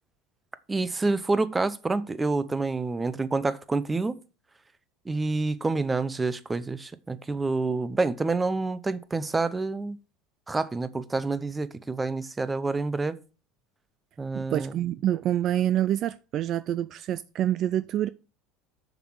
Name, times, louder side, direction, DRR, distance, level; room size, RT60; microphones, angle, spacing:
voice 1, 0.7-4.2 5.1-10.0 10.5-13.2 14.2-14.7, right 3 dB, 15° right, 0.7 m, -28 dB
voice 2, 14.4-18.1, right 11 dB, 45° right, 0.4 m, -27 dB
6.8 x 6.1 x 6.4 m
supercardioid pair, 125°, 0 cm